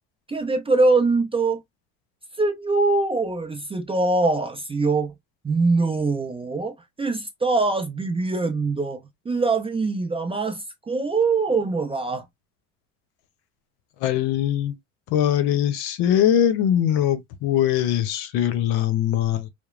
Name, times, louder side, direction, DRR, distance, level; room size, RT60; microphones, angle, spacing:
voice 1, 0.3-1.6 2.4-5.1 5.4-12.2, right 3 dB, 15° right, 0.4 m, -23 dB
voice 2, 14.0-14.7 15.1-19.5, left 10 dB, 65° left, 0.8 m, -21 dB
2.9 x 2.0 x 2.4 m
supercardioid pair, 90°, 41 cm